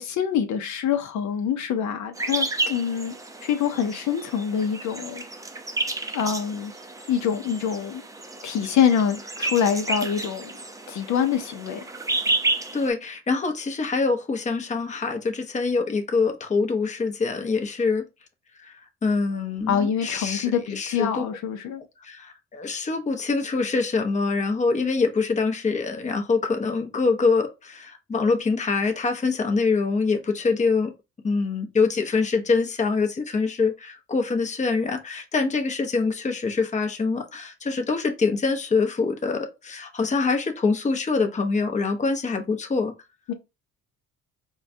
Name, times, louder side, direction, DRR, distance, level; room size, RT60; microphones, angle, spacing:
voice 1, 0.0-3.2 3.4-5.2 6.1-6.7 7.1-8.0 8.4-10.5 10.9-11.8 19.7-21.8 43.3-43.4, left 8 dB, 70° left, 0.6 m, -25 dB
sound 1, 2.2-12.9, right 2 dB, 10° right, 0.5 m, -31 dB
voice 2, 12.7-18.0 18.6-21.2 22.0-30.9 31.2-42.9, left 4 dB, 25° left, 0.7 m, -25 dB
4.6 x 2.2 x 2.6 m
cardioid pair, 90°, 30 cm